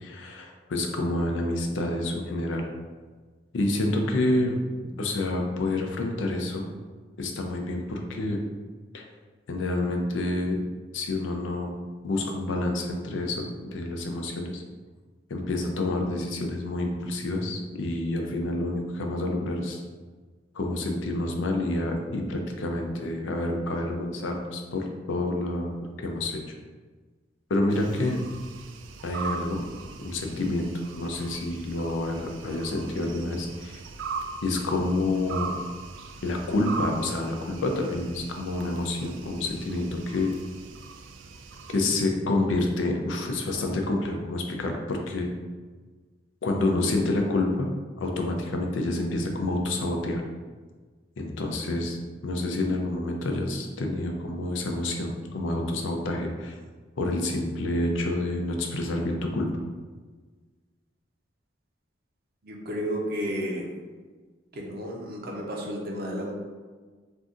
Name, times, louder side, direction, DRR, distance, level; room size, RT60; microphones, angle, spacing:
voice 1, 0.0-2.6 3.5-4.5 5.0-6.7 7.2-8.4 8.9-9.0 9.5-10.6 10.9-11.7 12.0-13.4 13.7-14.6 15.3-19.8 20.5-25.7 26.0-26.4 27.5-28.2 29.0-29.6 30.0-30.7 30.9-33.8 34.4-35.5 36.2-40.3 41.7-45.3 46.4-47.7 48.0-50.2 51.2-52.0 52.2-56.5 57.0-59.5, left 2 dB, 85° left, 2 dB, 0.5 m, -28 dB
sound 1, 27.7-42.0, right 4 dB, 90° right, 0.3 m, -40 dB
voice 2, 62.4-63.7 64.5-66.3, equal, 55° right, -1 dB, 0.6 m, -32 dB
2.6 x 2.4 x 3.6 m, 1.4 s
head